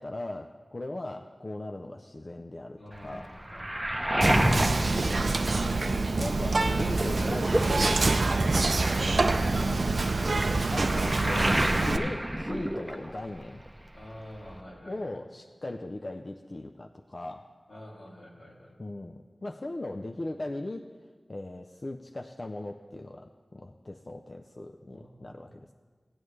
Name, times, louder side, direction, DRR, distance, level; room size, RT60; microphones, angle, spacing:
voice 1, 0.0-3.3 4.2-4.7 6.2-8.1 8.3-9.8 10.3-13.6 14.9-17.5 18.8-20.9 21.3-25.7, left 2 dB, 45° left, 3 dB, 0.5 m, -39 dB
voice 2, 2.8-3.7 13.9-15.0 17.7-18.7 24.9-25.4, left 1 dB, 80° left, -5 dB, 2.6 m, -47 dB
Waves surf, 2.9-6.1 6.5-13.4 13.7-14.6, right 1 dB, 15° right, 0.7 m, -31 dB
Whispering, 4.2-12.0, right 3 dB, 70° right, 0.4 m, -26 dB
17.0 x 8.9 x 3.2 m, 1.5 s
wide cardioid pair, 55°, 0 cm